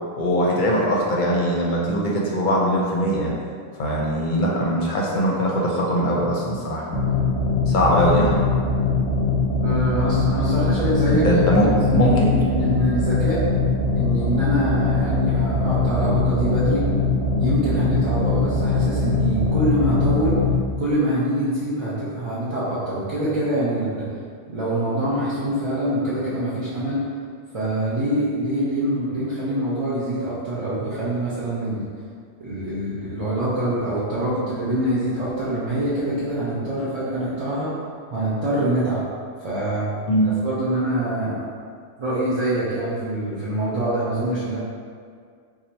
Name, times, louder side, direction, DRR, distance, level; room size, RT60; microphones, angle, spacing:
voice 1, 0.2-3.3 3.8-6.8 7.7-8.3 11.1-12.4 40.1-40.3, equal, 55° left, -3 dB, 0.7 m, -21 dB
sound 1, 6.9-20.5, left 3 dB, 5° left, 0.8 m, -22 dB
voice 2, 9.6-13.4 13.9-16.8 17.4-20.4 20.8-24.1 24.5-27.0 27.5-31.9 32.4-37.7 38.1-39.0 39.4-39.9 40.2-41.4 42.0-44.6, right 1 dB, 40° right, -11 dB, 0.6 m, -25 dB
2.8 x 2.5 x 4.2 m, 2.1 s
omnidirectional pair, 1.1 m